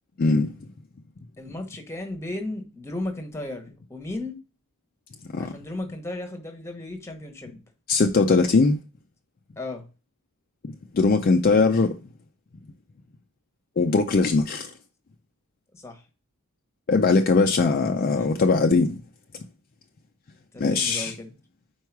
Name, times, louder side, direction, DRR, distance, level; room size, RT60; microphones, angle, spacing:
voice 1, 0.2-0.5 5.3-5.4 7.9-8.8 10.9-11.9 13.8-14.7 16.9-19.0 20.6-21.1, left 3 dB, 40° left, 0.4 m, -20 dB
voice 2, 1.4-4.4 5.4-7.6 9.6-9.9 15.7-16.0 17.6-17.7 18.2-18.4 20.5-21.3, left 2 dB, 10° left, 1.0 m, -35 dB
4.6 x 4.5 x 4.6 m
head